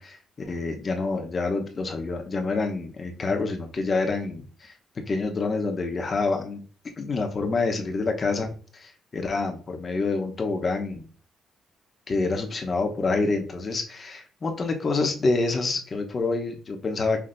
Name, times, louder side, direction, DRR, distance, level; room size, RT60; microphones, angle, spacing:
voice 1, 0.0-4.7 5.1-6.6 7.0-11.1 12.1-17.2, left 3 dB, 40° left, 4 dB, 1.0 m, -27 dB
5.9 x 2.9 x 2.6 m, 0.43 s
cardioid pair, 90°, 0 cm